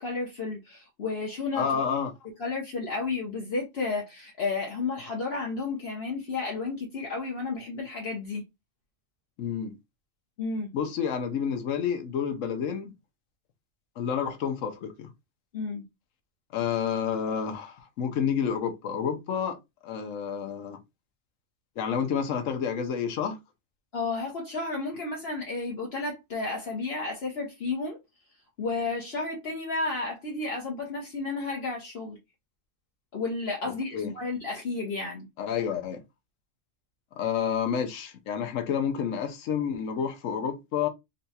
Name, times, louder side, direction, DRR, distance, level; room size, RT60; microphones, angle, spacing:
voice 1, 0.0-1.8 2.4-8.4 10.4-10.7 15.5-15.9 23.9-28.0 28.6-32.2 33.1-35.3, left 3 dB, 55° left, 1.1 m, -32 dB
voice 2, 1.5-2.1 9.4-9.8 10.7-12.9 14.0-15.1 16.5-19.6 19.8-20.8 21.8-23.4 33.9-34.2 35.4-36.0 37.2-40.9, left 7 dB, 90° left, 1.1 m, -29 dB
4.0 x 2.2 x 2.7 m
omnidirectional pair, 1.3 m